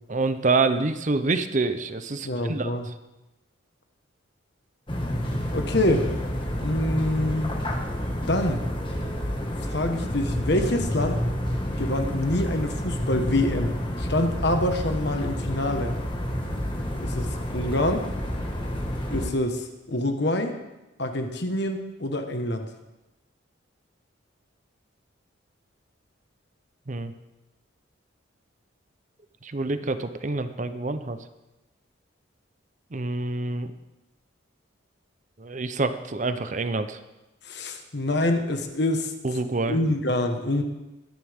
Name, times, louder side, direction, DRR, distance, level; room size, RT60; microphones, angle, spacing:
voice 1, 0.1-2.7 26.9-27.1 29.4-31.2 32.9-33.7 35.4-37.0 39.2-39.8, right 3 dB, 40° right, 10 dB, 0.7 m, -27 dB
voice 2, 2.2-2.9 5.5-6.1 6.6-7.6 8.3-8.6 9.6-11.2 11.8-13.7 14.0-15.9 17.0-18.0 19.1-20.5 21.0-22.6 37.4-39.1 39.7-40.6, left 1 dB, 55° left, 5 dB, 1.4 m, -26 dB
sound 1, 4.9-19.3, equal, 25° left, 1.7 m, -29 dB
21.5 x 10.5 x 3.6 m, 1.0 s
head